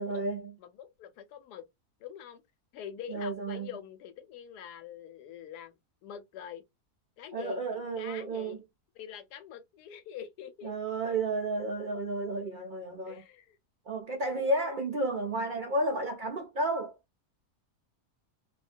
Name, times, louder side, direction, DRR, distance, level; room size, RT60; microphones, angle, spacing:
voice 1, 0.0-0.5 3.1-3.7 7.3-8.6 10.6-13.2 13.9-16.9, right 2 dB, 85° right, 0.4 m, -32 dB
voice 2, 0.6-1.6 2.0-2.4 2.7-5.8 6.0-6.6 7.2-8.6 9.0-10.8 13.1-13.6, left 9 dB, 90° left, 1.2 m, -45 dB
2.6 x 2.2 x 2.4 m
omnidirectional pair, 1.7 m